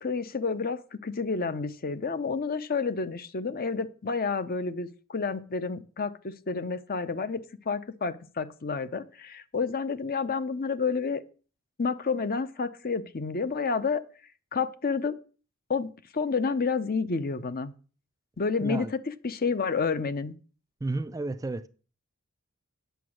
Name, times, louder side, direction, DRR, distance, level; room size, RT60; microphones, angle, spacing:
voice 1, 0.0-11.2 11.8-14.0 14.5-15.2 15.7-17.7 18.4-20.4, left 4 dB, 45° left, 0.7 m, -30 dB
voice 2, 18.6-18.9 20.8-21.7, right 2 dB, 15° right, 0.4 m, -32 dB
9.2 x 6.9 x 6.3 m
head